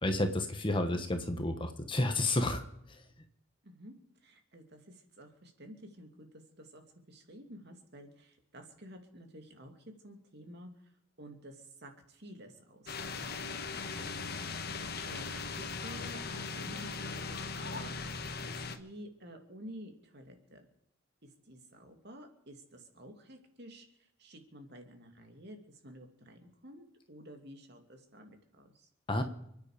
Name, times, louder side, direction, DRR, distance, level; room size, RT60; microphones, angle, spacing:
voice 1, 0.0-2.6 29.1-29.2, left 1 dB, 25° left, 6 dB, 1.3 m, -30 dB
voice 2, 3.6-3.9 4.2-6.3 6.6-6.8 7.1-10.7 11.2-15.3 15.6-18.2 18.4-20.7 21.2-28.9, equal, 55° right, 4 dB, 2.7 m, -51 dB
sound 1, 12.9-18.8, left 4 dB, 50° left, 1.4 m, -39 dB
29.0 x 9.7 x 5.1 m, 0.76 s
head